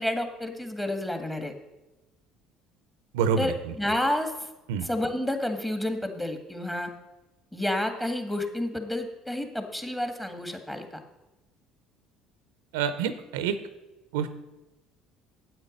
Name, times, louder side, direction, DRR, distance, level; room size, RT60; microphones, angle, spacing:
voice 1, 0.0-1.5 3.4-3.5 3.8-4.3 4.8-6.9 7.5-10.9, left 1 dB, 10° left, 6 dB, 1.8 m, -30 dB
voice 2, 3.1-3.7 4.7-4.9 12.7-13.6 14.1-14.3, right 7 dB, 85° right, 12 dB, 0.6 m, -27 dB
8.9 x 8.0 x 5.3 m, 1.0 s
hypercardioid pair, 70°, 0 cm